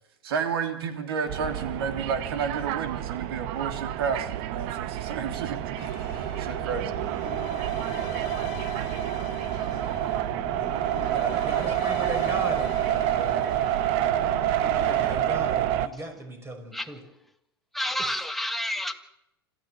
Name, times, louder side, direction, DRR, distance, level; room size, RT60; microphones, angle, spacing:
voice 1, 0.2-5.8 6.4-6.9, right 6 dB, 70° right, 3.3 m, -31 dB
sound 1, 1.3-15.9, right 12 dB, 50° right, 1.1 m, -28 dB
sound 2, 5.7-15.2, left 17 dB, 50° left, 1.2 m, -43 dB
voice 2, 11.1-13.6 14.9-17.0, right 2 dB, 20° right, 5.8 m, -37 dB
voice 3, 17.7-19.0, left 1 dB, ahead, 1.8 m, -30 dB
26.5 x 14.5 x 7.8 m
hypercardioid pair, 95°, 13 cm